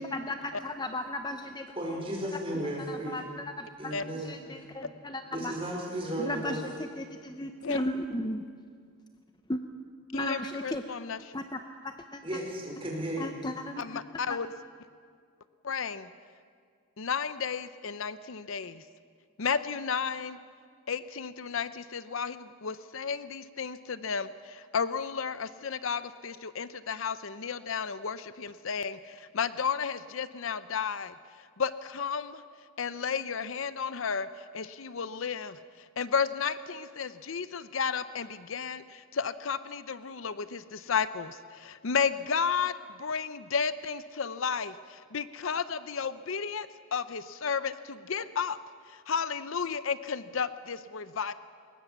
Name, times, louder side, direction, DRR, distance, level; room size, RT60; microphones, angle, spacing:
voice 1, 0.0-1.7 2.9-5.5 6.2-7.1 7.7-8.4 9.5-9.6 10.1-10.8 11.3-12.2 13.2-14.0 14.3-14.4, left 1 dB, 20° left, 6 dB, 0.7 m, -35 dB
voice 2, 1.7-3.2 3.8-4.3 5.3-6.6 12.2-13.3, right 1 dB, 25° right, -1 dB, 5.1 m, -34 dB
voice 3, 10.1-11.2 13.8-14.5 15.6-16.1 17.0-18.8 19.4-20.4 20.9-31.1 31.6-32.4 32.8-34.3 34.5-35.6 36.0-42.7 43.0-48.6 49.1-51.3, left 6 dB, 70° left, 14 dB, 0.6 m, -33 dB
22.0 x 19.5 x 7.0 m, 2.1 s
head